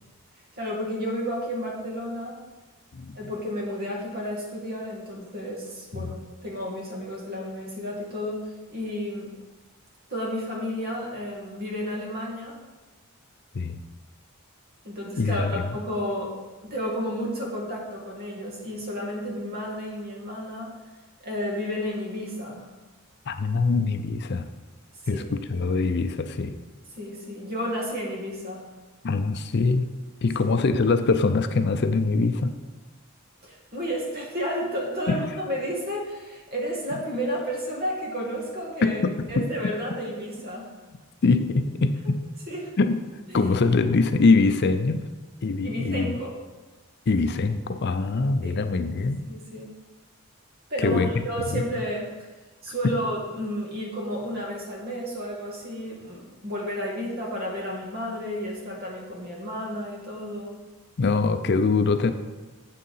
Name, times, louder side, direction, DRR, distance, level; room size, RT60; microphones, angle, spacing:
voice 1, 0.6-2.4 3.1-9.3 10.1-12.6 14.8-16.3 16.6-20.7 21.2-22.7 25.1-25.3 27.0-28.7 30.4-30.5 33.4-39.0 39.3-40.7 42.5-42.7 43.3-43.4 45.6-46.3 48.4-48.5 49.3-49.8 50.7-52.1 52.6-60.6, equal, 45° right, -2 dB, 2.1 m, -32 dB
voice 2, 15.2-15.6 23.3-24.5 25.1-26.6 29.0-29.9 30.2-32.5 35.1-35.3 38.8-39.5 41.2-42.3 42.8-43.0 43.3-45.1 45.4-46.1 47.1-49.3 50.8-51.1 51.5-51.6 52.8-53.0 61.0-62.1, left 3 dB, 50° left, 9 dB, 0.5 m, -23 dB
7.5 x 6.6 x 5.5 m, 1.2 s
head